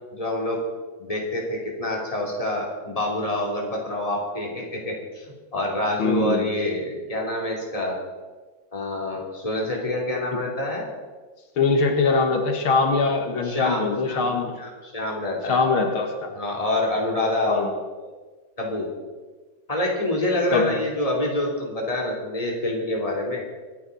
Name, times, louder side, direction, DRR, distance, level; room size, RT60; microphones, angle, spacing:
voice 1, 0.1-0.6 1.0-8.0 8.7-10.9 13.4-14.3 14.6-15.6 16.3-17.7 18.0-18.1 18.6-18.9 19.7-23.4, left 1 dB, 15° left, -2 dB, 3.1 m, -27 dB
voice 2, 6.0-6.5 11.6-14.5 15.5-16.3 17.5-17.7 20.5-20.8, left 4 dB, 85° left, 4 dB, 2.4 m, -22 dB
25.5 x 10.5 x 4.1 m, 1.3 s
omnidirectional pair, 2.2 m